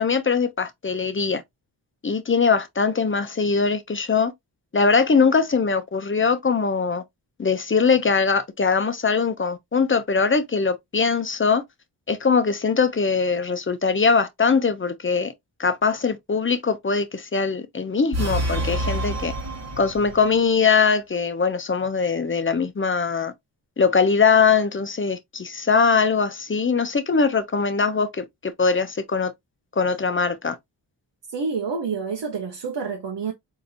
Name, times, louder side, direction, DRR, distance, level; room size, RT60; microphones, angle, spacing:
voice 1, 0.0-1.4 2.0-4.3 4.7-7.0 7.4-11.6 12.1-15.3 15.6-19.3 19.8-23.3 23.8-29.3 29.8-30.6, left 5 dB, 25° left, 0.7 m, -21 dB
sound 1, 18.1-20.4, right 1 dB, 35° right, 1.1 m, -27 dB
voice 2, 31.3-33.3, right 5 dB, 65° right, 0.9 m, -28 dB
3.9 x 2.8 x 2.5 m
cardioid pair, 45°, 46 cm